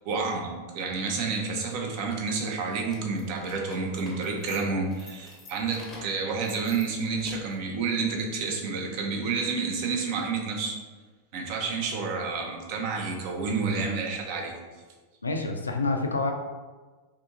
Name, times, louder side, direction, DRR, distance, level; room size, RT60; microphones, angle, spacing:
voice 1, 0.0-10.8 11.3-14.6, right 4 dB, 45° right, 1 dB, 0.5 m, -29 dB
sound 1, 2.8-7.7, left 2 dB, 25° left, 0.6 m, -49 dB
voice 2, 15.2-16.3, left 3 dB, 75° left, 4 dB, 0.3 m, -27 dB
2.7 x 2.6 x 2.5 m, 1.3 s
figure-of-eight pair, 90°, 0 cm